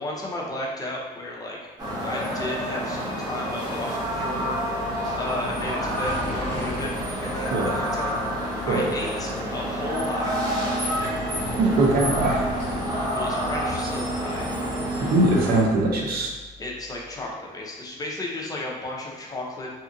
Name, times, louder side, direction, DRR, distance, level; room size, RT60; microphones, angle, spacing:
voice 1, 0.0-1.6 2.0-4.9 5.1-7.0 7.2-8.2 8.7-10.4 13.1-14.5 16.6-19.7, left 1 dB, 20° left, -3 dB, 0.6 m, -33 dB
sound 1, 1.8-15.6, equal, 25° right, 1.1 m, -28 dB
sound 2, 3.9-17.0, left 1 dB, 85° right, 0.9 m, -39 dB
voice 2, 11.6-12.4 15.0-16.3, right 2 dB, 65° right, -1 dB, 0.7 m, -21 dB
2.8 x 2.4 x 2.5 m, 1.2 s
cardioid pair, 110°, 17 cm